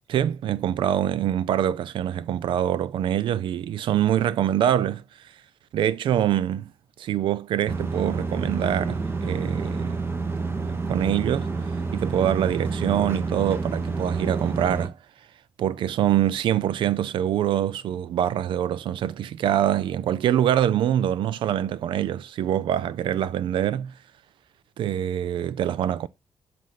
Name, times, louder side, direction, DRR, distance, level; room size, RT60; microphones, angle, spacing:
voice 1, 0.1-5.0 5.7-6.7 7.0-10.0 10.6-11.5 11.9-15.0 15.6-23.9 24.8-26.1, right 10 dB, 75° right, 0.4 m, -24 dB
sound 1, 7.7-14.9, right 4 dB, 30° right, 1.1 m, -28 dB
7.4 x 2.7 x 5.7 m
cardioid pair, 60°, 8 cm